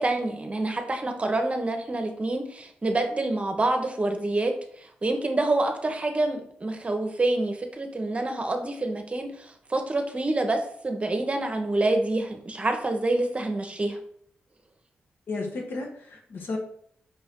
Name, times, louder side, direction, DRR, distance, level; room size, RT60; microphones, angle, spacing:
voice 1, 0.0-14.0, right 2 dB, 35° right, 4 dB, 0.8 m, -27 dB
voice 2, 15.3-16.6, left 3 dB, 65° left, 1 dB, 1.1 m, -33 dB
5.3 x 2.6 x 3.5 m, 0.64 s
cardioid pair, 55°, 4 cm